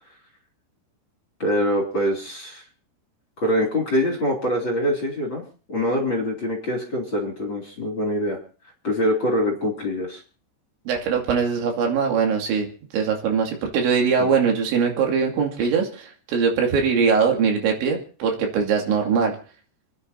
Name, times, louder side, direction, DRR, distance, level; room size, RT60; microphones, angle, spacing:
voice 1, 1.4-2.6 3.4-5.4 5.7-8.4 8.8-10.2 14.2-14.3, equal, 30° left, -1 dB, 3.0 m, -24 dB
voice 2, 10.9-19.4, right 6 dB, 85° right, 2 dB, 4.7 m, -22 dB
30.0 x 10.0 x 2.8 m, 0.40 s
omnidirectional pair, 5.2 m